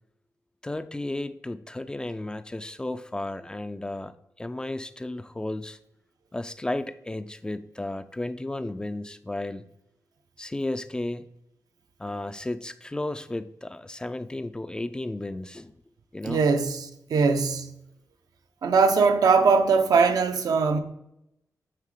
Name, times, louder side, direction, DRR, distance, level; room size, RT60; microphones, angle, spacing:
voice 1, 0.6-4.1 4.4-5.8 6.3-9.6 10.4-11.2 12.0-15.7 16.1-16.4, left 2 dB, 15° left, 0.3 m, -33 dB
voice 2, 16.2-17.7 18.6-20.8, right 4 dB, 80° right, 0.8 m, -21 dB
9.1 x 3.8 x 4.9 m
wide cardioid pair, 155°, 6 cm